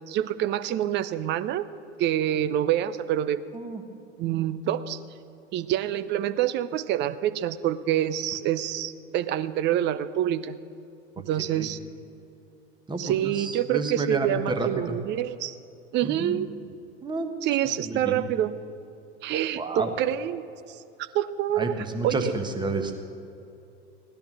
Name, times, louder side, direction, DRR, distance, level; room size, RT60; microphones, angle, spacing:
voice 1, 0.1-1.7 2.0-3.4 4.2-5.0 5.5-10.6 11.3-11.8 13.0-15.6 15.9-16.5 17.4-18.5 19.2-20.8 21.1-21.7 22.0-22.3, right 11 dB, 35° right, 13 dB, 0.6 m, -26 dB
voice 2, 11.4-11.7 12.9-15.0 16.0-16.5 17.0-17.3 17.9-18.3 19.6-19.9 21.6-22.9, right 3 dB, 15° right, 5 dB, 1.4 m, -30 dB
16.5 x 10.5 x 6.2 m, 2.7 s
figure-of-eight pair, 80°, 34 cm